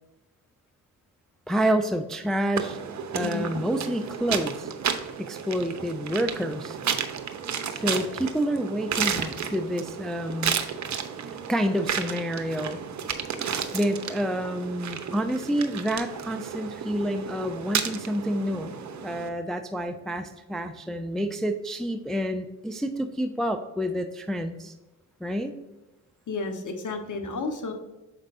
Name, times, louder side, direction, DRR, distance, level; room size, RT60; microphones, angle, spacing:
voice 1, 1.5-2.8 3.1-4.7 5.2-6.8 7.7-10.6 11.5-12.8 13.7-18.8 19.0-24.7 25.2-25.5, equal, ahead, 7 dB, 0.5 m, -28 dB
sound 1, 2.6-19.3, right 7 dB, 45° right, 0.7 m, -32 dB
voice 2, 3.1-3.5 26.3-27.7, left 3 dB, 45° left, 4 dB, 1.3 m, -32 dB
7.2 x 5.2 x 2.6 m, 1.1 s
hypercardioid pair, 45°, 41 cm